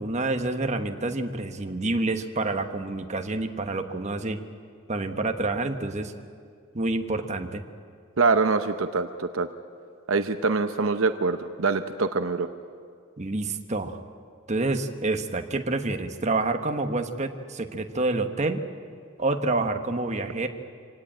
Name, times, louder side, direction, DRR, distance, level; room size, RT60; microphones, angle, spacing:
voice 1, 0.0-4.4 4.9-6.1 6.7-7.6 13.2-14.0 14.5-18.6 19.2-20.5, right 2 dB, 35° right, 6 dB, 1.2 m, -28 dB
voice 2, 8.2-9.5 10.1-12.5, right 4 dB, 65° right, 8 dB, 0.8 m, -24 dB
25.5 x 18.0 x 8.9 m, 2.2 s
head